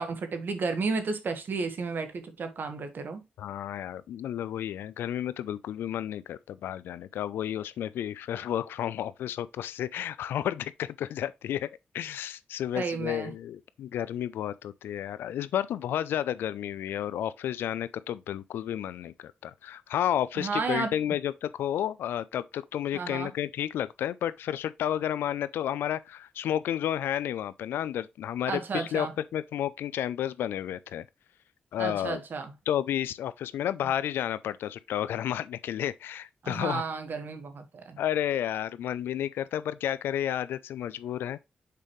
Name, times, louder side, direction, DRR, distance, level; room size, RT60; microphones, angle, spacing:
voice 1, 0.0-3.2 12.7-13.3 20.4-20.9 22.9-23.3 28.5-29.1 31.8-32.5 36.4-38.0, right 4 dB, 65° right, 1.5 m, -32 dB
voice 2, 3.4-11.7 11.9-31.0 31.7-32.2 32.7-36.8 38.0-41.4, left 11 dB, 90° left, 0.4 m, -31 dB
6.7 x 5.1 x 3.2 m
supercardioid pair, 45°, 4 cm